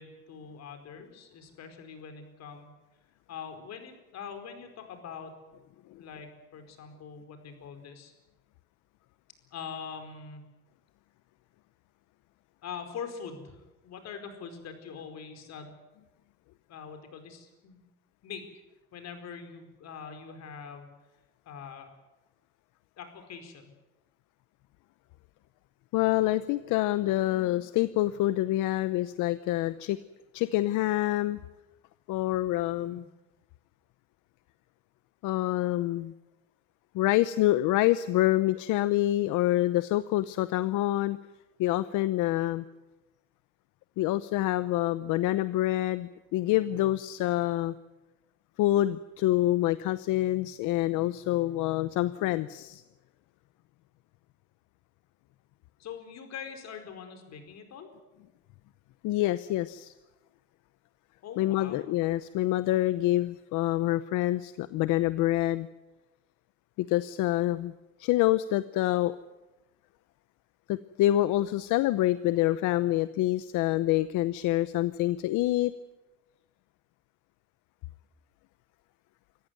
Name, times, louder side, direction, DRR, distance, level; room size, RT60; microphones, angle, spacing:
voice 1, 0.0-2.7 3.3-5.3 5.9-8.1 9.5-10.4 12.6-15.7 16.7-17.8 18.2-18.5 18.9-20.9 21.4-21.9 23.0-23.6 32.8-33.0 42.3-42.5 51.8-52.0 55.8-57.9 61.2-61.9, left 6 dB, 60° left, 7 dB, 4.8 m, -43 dB
voice 2, 25.9-30.0 30.3-31.4 32.1-33.0 35.2-36.1 36.9-41.2 41.6-42.6 44.0-47.7 48.6-52.8 59.0-59.9 61.4-65.7 66.8-67.7 68.0-69.2 70.7-75.7, left 15 dB, 80° left, 14 dB, 0.8 m, -26 dB
26.5 x 14.5 x 9.5 m, 1.0 s
cardioid pair, 125°, 31 cm